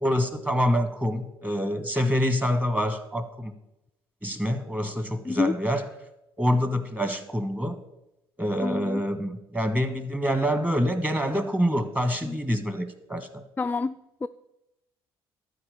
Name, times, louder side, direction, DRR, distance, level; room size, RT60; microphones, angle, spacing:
voice 1, 0.0-3.5 4.2-5.8 6.4-7.8 8.4-13.4, equal, 10° right, 9 dB, 1.6 m, -26 dB
voice 2, 8.6-9.0 12.3-12.4 13.6-13.9 14.2-14.3, left 4 dB, 15° left, 9 dB, 0.4 m, -27 dB
12.5 x 4.8 x 8.6 m, 0.88 s
hypercardioid pair, 50°, 12 cm